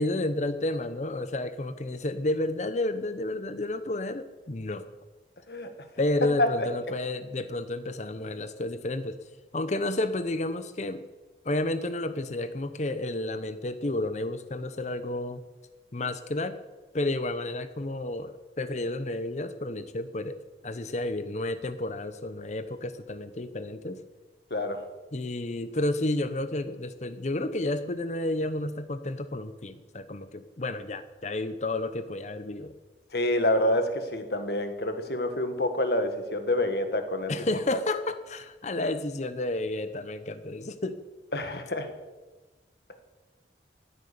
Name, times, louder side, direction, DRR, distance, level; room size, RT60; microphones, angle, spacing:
voice 1, 0.0-4.9 6.0-9.2 9.5-11.1 11.4-15.4 15.9-16.6 16.9-24.0 25.1-32.7 37.3-41.0, left 2 dB, 40° left, 12 dB, 0.8 m, -31 dB
voice 2, 24.5-24.8 33.1-37.3 41.3-41.9, left 1 dB, 65° left, 8 dB, 1.6 m, -27 dB
15.5 x 9.4 x 6.8 m, 1.2 s
head